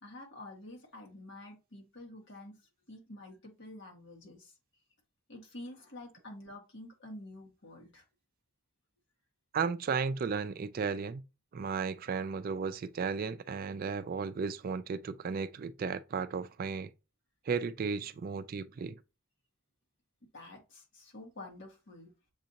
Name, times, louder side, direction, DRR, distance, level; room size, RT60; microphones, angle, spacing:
voice 1, 0.0-2.6 2.9-4.5 5.3-8.0 20.3-22.1, left 1 dB, 60° left, 1.8 m, -48 dB
voice 2, 9.5-11.2 11.5-16.9 17.5-19.0, right 5 dB, 45° right, 0.3 m, -34 dB
7.2 x 2.6 x 2.9 m
head